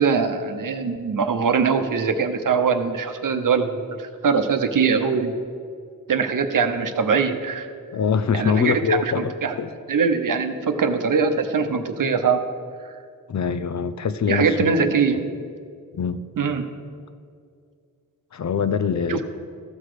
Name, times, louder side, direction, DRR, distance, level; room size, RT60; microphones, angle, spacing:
voice 1, 0.0-5.3 6.1-7.7 8.3-9.5 9.9-12.4 14.3-15.3 16.4-16.6 19.1-19.2, right 5 dB, 65° right, 7 dB, 0.8 m, -22 dB
voice 2, 7.9-9.3 9.6-9.7 13.3-14.7 15.1-15.2 15.9-16.2 18.3-19.2, left 6 dB, 55° left, 11 dB, 0.5 m, -23 dB
14.5 x 6.1 x 4.9 m, 2.2 s
wide cardioid pair, 85°, 35 cm